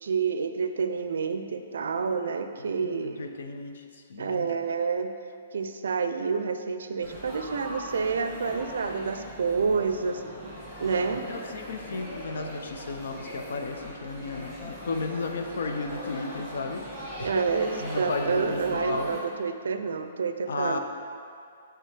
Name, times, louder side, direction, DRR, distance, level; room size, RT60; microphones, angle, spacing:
voice 1, 0.0-3.2 4.2-5.1 5.5-10.2 10.8-11.2 17.2-20.8, right 5 dB, 75° right, 8 dB, 0.4 m, -28 dB
voice 2, 2.8-4.6 11.3-16.8 17.2-17.4 17.8-19.1 20.5-20.8, left 3 dB, 70° left, 5 dB, 0.6 m, -34 dB
Laughter / Chatter / Crowd, 7.0-19.2, equal, 5° left, 1.4 m, -40 dB
9.9 x 3.4 x 3.3 m, 2.4 s
hypercardioid pair, 175°, 0 cm